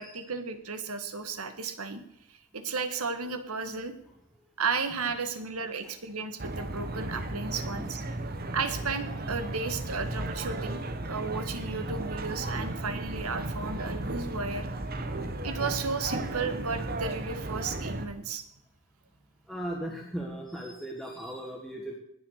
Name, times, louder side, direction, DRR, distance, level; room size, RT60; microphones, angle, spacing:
voice 1, 0.0-2.0 2.5-3.9 4.6-8.0 8.5-14.7 15.4-18.4, right 4 dB, 75° right, 9 dB, 1.7 m, -34 dB
sound 1, 6.4-18.1, right 2 dB, 40° right, 1.3 m, -35 dB
voice 2, 7.3-8.0 9.5-9.6 12.0-12.1 19.5-22.0, right 1 dB, ahead, -1 dB, 1.6 m, -39 dB
19.5 x 7.1 x 6.6 m, 0.79 s
head